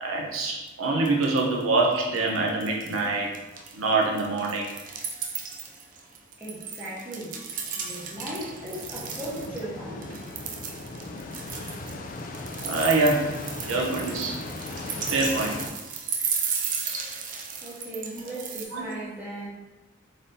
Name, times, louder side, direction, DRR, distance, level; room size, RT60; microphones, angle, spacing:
voice 1, 0.0-3.3 3.7-4.7 12.6-13.3 13.7-14.4 15.1-15.6 18.7-18.8, right 3 dB, 85° right, -1 dB, 0.8 m, -25 dB
sound 1, 0.7-0.8 1.1-1.6 1.9-3.1 3.3-9.6 10.0-18.6, right 6 dB, 40° right, 0.4 m, -35 dB
voice 2, 6.4-7.5 7.8-10.2 17.6-19.5, right 1 dB, 10° right, -7 dB, 1.0 m, -37 dB
sound 2, 7.4-15.7, left 2 dB, 40° left, 0.3 m, -38 dB
4.0 x 3.4 x 2.7 m, 1.1 s
head